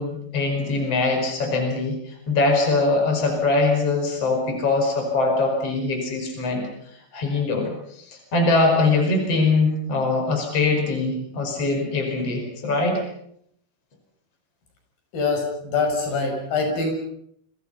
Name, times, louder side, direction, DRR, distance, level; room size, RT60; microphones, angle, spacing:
voice 1, 0.0-6.7 7.1-13.0, left 3 dB, 40° left, 3 dB, 6.1 m, -22 dB
voice 2, 15.1-16.9, left 4 dB, 75° left, 2 dB, 8.3 m, -24 dB
30.0 x 25.5 x 5.7 m, 0.71 s
omnidirectional pair, 4.2 m